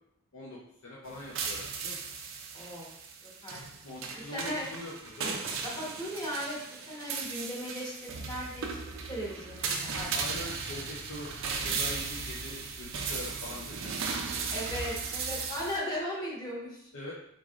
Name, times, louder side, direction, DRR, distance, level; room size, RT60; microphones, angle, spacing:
voice 1, 0.3-2.0 3.8-5.4 10.1-11.3 11.6-13.9 16.9-17.1, left 1 dB, 70° left, -5 dB, 0.6 m, -43 dB
sound 1, 1.1-15.8, right 5 dB, 65° right, 0.5 m, -36 dB
voice 2, 2.5-2.9 3.2-3.6 4.3-4.7 5.6-6.6 6.9-8.8 9.1-10.1 10.7-10.8 14.5-16.9, equal, 20° left, -5 dB, 1.1 m, -37 dB
3.6 x 3.2 x 2.4 m, 0.75 s
head